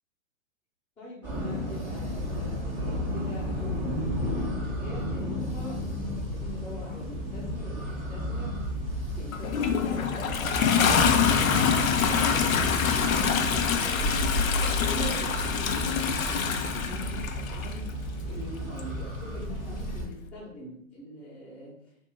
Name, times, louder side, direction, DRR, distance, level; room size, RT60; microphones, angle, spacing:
voice 1, 1.0-8.6 9.1-21.8, left 1 dB, 15° left, -10 dB, 0.7 m, -42 dB
sound 1, 1.2-20.1, left 1 dB, 5° right, 0.4 m, -32 dB
Toilet flush, 9.3-17.7 18.8-18.9, left 7 dB, 70° left, 0.6 m, -25 dB
2.5 x 2.5 x 3.5 m, 0.69 s
hypercardioid pair, 125°, 42 cm